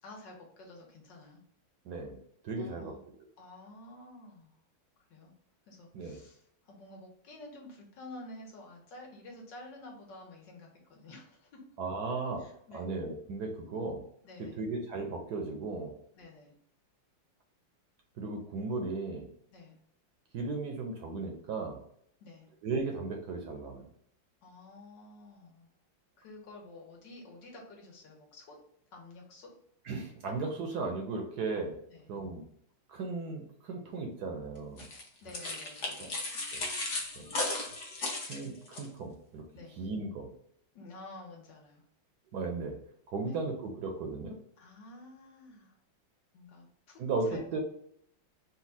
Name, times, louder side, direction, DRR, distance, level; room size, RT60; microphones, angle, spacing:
voice 1, 0.0-1.4 2.5-3.0 3.4-4.5 5.1-5.3 5.7-11.6 12.4-12.9 13.7-13.8 14.2-14.6 16.1-16.5 19.5-19.8 22.2-22.5 24.4-25.7 26.2-28.6 28.9-29.5 31.9-32.1 35.2-36.2 37.1-37.4 39.5-39.8 40.7-41.8 43.2-43.4 44.6-45.8 46.3-47.5, left 2 dB, 70° left, 0 dB, 1.7 m, -50 dB
voice 2, 1.8-2.2 2.4-2.9 5.9-6.2 11.8-12.4 12.7-14.0 14.6-15.9 18.2-19.3 20.3-21.8 22.6-23.9 29.8-31.7 32.1-32.4 32.9-34.9 36.0-36.1 36.5-36.6 37.2-37.3 38.3-39.4 39.8-40.3 42.3-42.7 43.1-44.4 47.0-47.6, right 3 dB, 65° right, 2 dB, 1.1 m, -36 dB
sound 1, 34.8-38.9, left 2 dB, 50° left, 1.0 m, -36 dB
4.1 x 2.3 x 4.0 m, 0.70 s
omnidirectional pair, 2.1 m